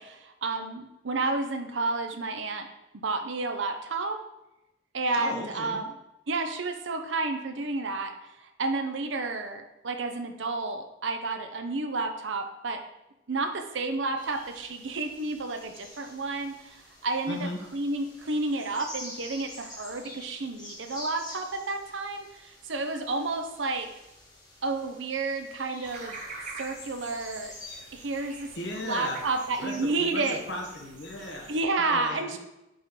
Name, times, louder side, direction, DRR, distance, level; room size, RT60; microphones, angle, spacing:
voice 1, 0.0-2.7 3.0-4.2 4.9-5.9 6.3-8.1 8.6-12.8 13.3-23.9 24.6-26.2 26.6-27.5 27.9-28.5 28.8-30.4 31.5-32.4, right 3 dB, 75° right, 6 dB, 0.8 m, -31 dB
voice 2, 5.1-5.8 17.3-17.6 28.5-29.3 29.6-32.4, left 1 dB, 60° left, 1 dB, 1.3 m, -37 dB
sound 1, 14.2-29.4, left 1 dB, 20° left, 2.3 m, -48 dB
sound 2, 25.8-31.6, right 3 dB, 40° right, 1.1 m, -45 dB
8.5 x 4.3 x 3.8 m, 0.92 s
head